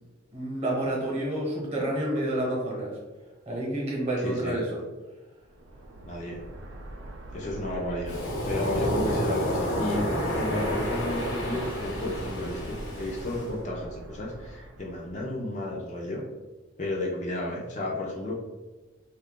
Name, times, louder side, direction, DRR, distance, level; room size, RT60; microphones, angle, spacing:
voice 1, 0.3-3.0 3.5-4.8, right 1 dB, 30° right, -3 dB, 1.0 m, -29 dB
voice 2, 4.2-4.6 6.0-6.4 7.3-8.2 8.5-16.2 16.8-18.3, left 1 dB, 35° left, -3 dB, 0.5 m, -32 dB
sound 1, 5.4-15.3, right 1 dB, 70° right, 0.4 m, -43 dB
Waves surf, 8.1-13.5, equal, 75° left, 1.0 m, -30 dB
2.7 x 2.3 x 3.6 m, 1.2 s
head